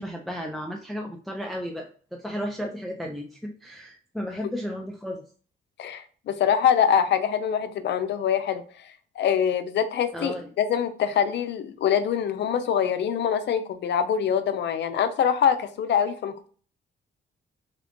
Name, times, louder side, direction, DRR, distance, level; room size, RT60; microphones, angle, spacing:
voice 1, 0.0-5.2 10.1-10.5, equal, ahead, 1 dB, 0.5 m, -34 dB
voice 2, 5.8-8.6 9.2-16.5, left 8 dB, 65° left, 10 dB, 0.5 m, -24 dB
3.5 x 2.4 x 3.6 m, 0.43 s
cardioid pair, 90°, 20 cm